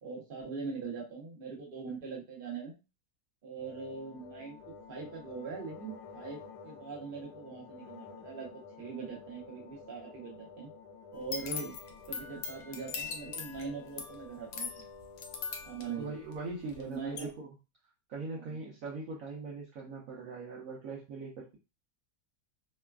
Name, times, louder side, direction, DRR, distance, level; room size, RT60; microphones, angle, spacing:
voice 1, 0.0-2.8 3.4-10.7 11.1-11.7 12.1-14.8 15.6-16.2 16.8-17.3 18.5-18.6, right 5 dB, 40° right, -2 dB, 1.0 m, -42 dB
sound 1, 3.6-15.8, left 5 dB, 70° left, 0.9 m, -51 dB
sound 2, 11.1-16.8 17.2-17.3, left 6 dB, 90° left, 1.2 m, -41 dB
voice 2, 15.9-17.5 18.1-21.6, right 3 dB, 65° right, -3 dB, 1.0 m, -41 dB
3.1 x 2.2 x 2.3 m, 0.28 s
omnidirectional pair, 1.7 m